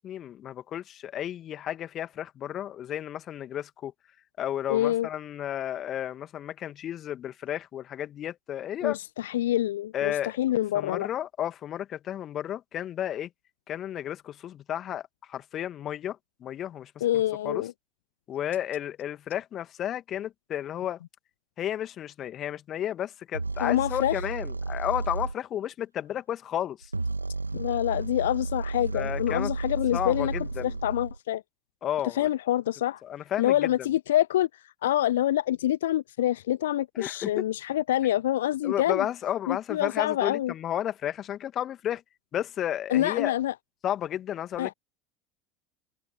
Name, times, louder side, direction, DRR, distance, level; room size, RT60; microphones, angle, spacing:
voice 1, 0.0-3.9 4.4-9.0 9.9-10.3 10.7-13.3 13.7-17.0 17.4-17.6 18.3-21.0 21.6-26.9 28.9-29.5 29.9-30.7 31.8-32.3 33.0-33.7 37.0-37.4 38.6-42.0 42.3-43.3 43.8-44.7, left 11 dB, 40° left, 2.2 m, -32 dB
voice 2, 4.7-5.1 8.8-11.1 17.0-17.7 23.6-24.2 27.5-31.4 32.0-33.0 33.4-39.1 39.5-40.5 42.9-43.5 44.6-44.7, left 13 dB, 70° left, 0.4 m, -26 dB
sound 1, 23.3-25.3 26.8-31.2, right 3 dB, 85° right, 2.3 m, -33 dB
figure-of-eight pair, 70°, 0 cm